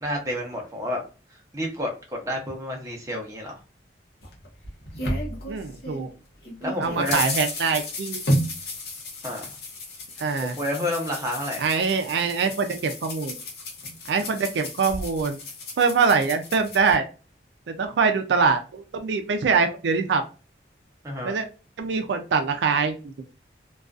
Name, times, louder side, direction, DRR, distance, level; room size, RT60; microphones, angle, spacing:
voice 1, 0.0-1.0 1.5-3.6 6.6-7.2 9.2-9.5 10.4-11.6 21.0-21.3, left 1 dB, 15° right, 0 dB, 0.6 m, -30 dB
sound 1, 4.2-6.1 6.4-16.9, left 1 dB, 60° left, 0.7 m, -32 dB
voice 2, 5.5-6.1 6.8-8.2 10.2-10.5 11.6-13.3 14.1-15.4 15.8-17.1 17.7-20.2 21.2-21.5 21.8-23.1, right 5 dB, 80° right, 6 dB, 0.4 m, -23 dB
2.4 x 2.3 x 2.3 m, 0.33 s
head